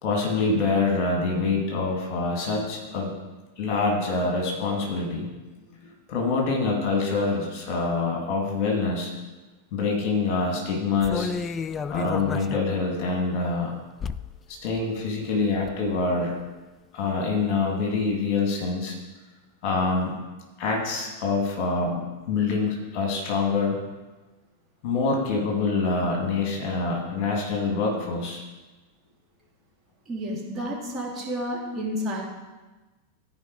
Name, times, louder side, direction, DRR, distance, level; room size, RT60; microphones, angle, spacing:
voice 1, 0.0-3.1 3.6-5.3 5.8-9.1 9.7-11.3 11.9-13.7 14.5-16.4 16.9-19.0 19.6-20.1 20.6-23.8 24.8-28.4, left 3 dB, 40° left, 0 dB, 2.4 m, -25 dB
sound 1, 11.0-12.6 13.0-13.1 14.0-14.4 14.7-14.8 15.3-15.9 16.3-16.4, left 5 dB, 20° left, 0.3 m, -32 dB
voice 2, 30.1-32.2, equal, 20° right, -4 dB, 2.4 m, -30 dB
14.5 x 4.9 x 4.8 m, 1.2 s
figure-of-eight pair, 90°, 0 cm